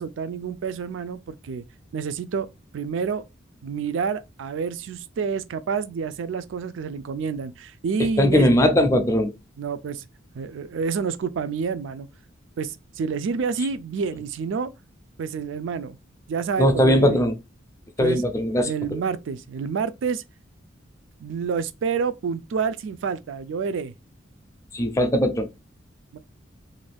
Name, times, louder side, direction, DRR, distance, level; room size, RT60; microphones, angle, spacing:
voice 1, 0.0-1.6 1.9-2.5 2.7-3.2 3.6-8.5 9.6-10.1 10.3-12.1 12.6-14.7 15.2-16.0 16.3-17.2 18.0-18.2 18.7-20.2 21.2-23.9 26.1-26.2, right 5 dB, 70° right, 0.3 m, -28 dB
voice 2, 8.0-9.3 16.6-17.4 18.0-18.7 24.7-25.5, left 1 dB, 15° left, 0.4 m, -19 dB
2.5 x 2.2 x 3.3 m
head